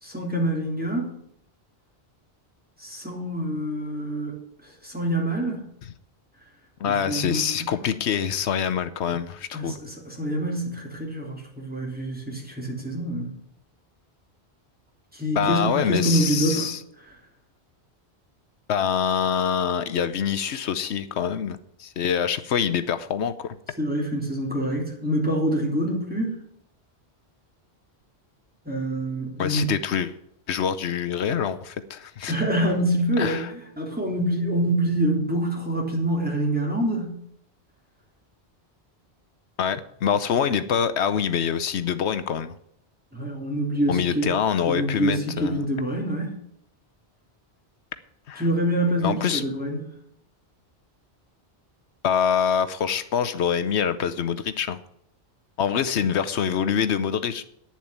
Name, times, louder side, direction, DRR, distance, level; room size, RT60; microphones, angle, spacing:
voice 1, 0.0-1.1 2.8-5.7 6.9-7.4 9.5-13.3 15.1-16.7 23.8-26.4 28.7-29.7 32.3-37.2 43.1-44.3 44.7-46.4 48.4-49.8, right 1 dB, 10° right, -2 dB, 3.4 m, -26 dB
voice 2, 6.8-9.8 15.3-16.8 18.7-23.5 29.4-30.2 30.5-32.4 33.2-33.5 39.6-42.5 43.9-45.7 48.3-48.4 49.0-49.4 52.0-54.8 55.6-57.4, left 8 dB, 85° left, 12 dB, 1.0 m, -25 dB
9.8 x 7.4 x 8.6 m, 0.72 s
omnidirectional pair, 1.1 m